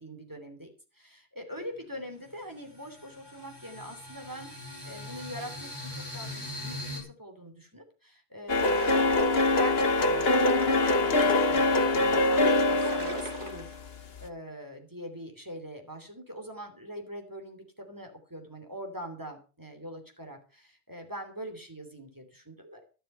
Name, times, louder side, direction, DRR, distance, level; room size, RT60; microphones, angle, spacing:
voice 1, 0.0-22.9, equal, 20° right, 3 dB, 3.0 m, -43 dB
sound 1, 1.6-1.7 2.1-7.0, left 1 dB, 20° left, 5.3 m, -41 dB
sound 2, 8.5-14.3, left 2 dB, 65° left, 1.5 m, -24 dB
sound 3, 8.5-9.5 10.1-11.7 12.2-12.3 12.5-13.9, right 3 dB, 85° right, 2.3 m, -43 dB
12.0 x 11.0 x 5.6 m, 0.36 s
omnidirectional pair, 1.1 m